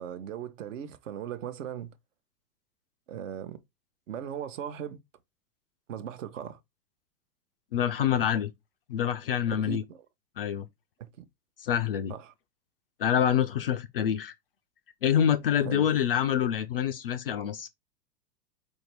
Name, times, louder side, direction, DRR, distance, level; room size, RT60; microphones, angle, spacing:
voice 1, 0.0-1.9 3.1-3.6 4.1-5.0 5.9-6.6 9.7-10.0 11.0-11.2 12.1-12.3 15.6-15.9, right 9 dB, 50° right, 0.8 m, -38 dB
voice 2, 7.7-8.5 8.9-9.8 10.4-10.7 11.6-12.1 13.0-14.3 15.0-17.7, left 9 dB, 40° left, 0.4 m, -26 dB
4.5 x 2.7 x 4.4 m
figure-of-eight pair, 100°, 49 cm